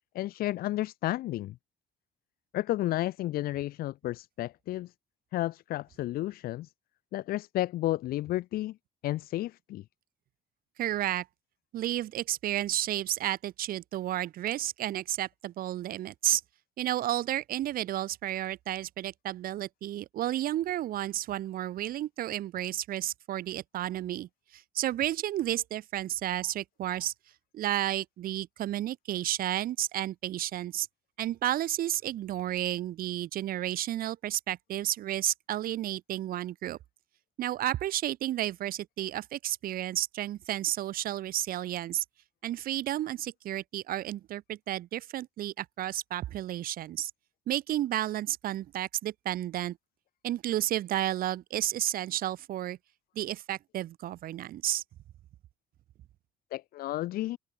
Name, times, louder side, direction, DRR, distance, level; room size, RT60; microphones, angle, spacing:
voice 1, 0.1-1.6 2.5-4.9 5.3-6.7 7.1-8.8 9.0-9.8 56.5-57.4, left 15 dB, 85° left, 1.2 m, -32 dB
voice 2, 10.8-11.3 11.7-16.4 16.8-27.1 27.5-30.9 31.2-36.8 37.4-42.0 42.4-47.1 47.5-49.8 50.2-52.8 53.1-54.8, right 13 dB, 75° right, 3.3 m, -32 dB
open air
cardioid pair, 120°, 15 cm